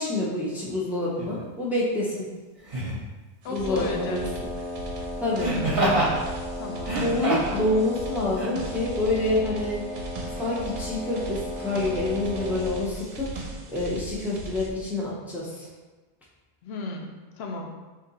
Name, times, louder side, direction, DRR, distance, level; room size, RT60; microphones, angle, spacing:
voice 1, 0.0-2.3 3.5-4.5 5.2-5.5 7.0-9.8 10.4-15.7, left 2 dB, ahead, -6 dB, 0.3 m, -27 dB
Laughter, 1.2-1.3 2.7-3.1 5.4-6.1 6.8-7.6 8.4-8.5, right 1 dB, 35° right, 0.7 m, -25 dB
voice 2, 3.4-4.2 6.6-7.0 16.6-17.1 17.4-17.7, left 3 dB, 70° left, 1 dB, 0.8 m, -34 dB
sound 1, 3.4-14.7, right 2 dB, 70° right, 0.8 m, -38 dB
Wind instrument woodwind instrument, 3.5-12.9, left 1 dB, 90° left, 1.1 m, -36 dB
2.7 x 2.5 x 3.9 m, 1.2 s
omnidirectional pair, 1.1 m